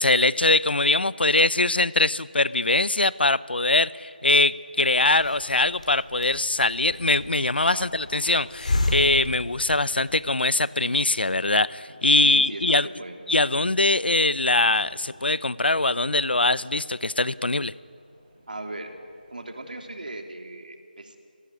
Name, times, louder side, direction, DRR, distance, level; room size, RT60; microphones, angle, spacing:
voice 1, 0.0-12.9 13.3-17.7, left 2 dB, 85° left, 19 dB, 0.8 m, -22 dB
sound 1, 3.8-20.0, right 1 dB, 20° right, 5.4 m, -55 dB
Hiss, 4.8-10.3, left 2 dB, 45° left, 3.8 m, -32 dB
voice 2, 12.2-13.2 18.5-18.9 19.3-21.2, right 2 dB, 55° right, 4 dB, 3.4 m, -38 dB
29.0 x 19.0 x 9.6 m, 2.4 s
figure-of-eight pair, 175°, 5 cm